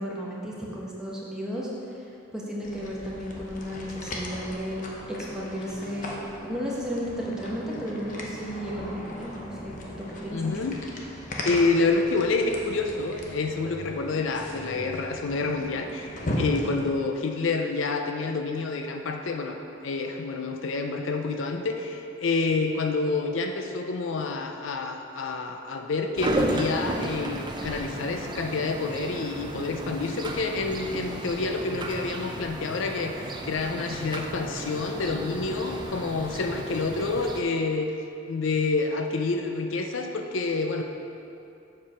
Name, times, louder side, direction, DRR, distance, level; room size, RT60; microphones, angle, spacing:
voice 1, 0.0-4.8 5.1-6.1 6.4-10.6, equal, 5° right, -5 dB, 1.1 m, -34 dB
sound 1, 2.6-16.9, left 1 dB, 40° left, 0.8 m, -37 dB
voice 2, 10.3-10.8 11.4-19.6 19.8-37.9 38.3-40.8, left 3 dB, 70° left, 4 dB, 0.5 m, -28 dB
sound 2, 26.2-37.4, right 1 dB, 20° right, 0.4 m, -33 dB
7.4 x 4.8 x 5.7 m, 2.7 s
head